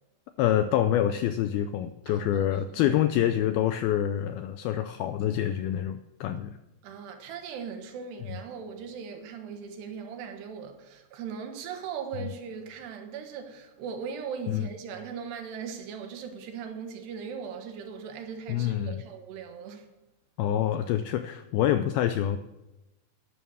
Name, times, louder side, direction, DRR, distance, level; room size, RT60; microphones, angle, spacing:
voice 1, 0.4-6.6 8.3-8.4 12.2-12.3 14.5-14.7 18.5-19.0 20.4-22.4, left 11 dB, 85° left, 2.2 m, -26 dB
voice 2, 2.1-2.5 2.7-3.0 6.8-19.9, right 6 dB, 75° right, 3.4 m, -39 dB
11.5 x 11.5 x 6.3 m
omnidirectional pair, 4.9 m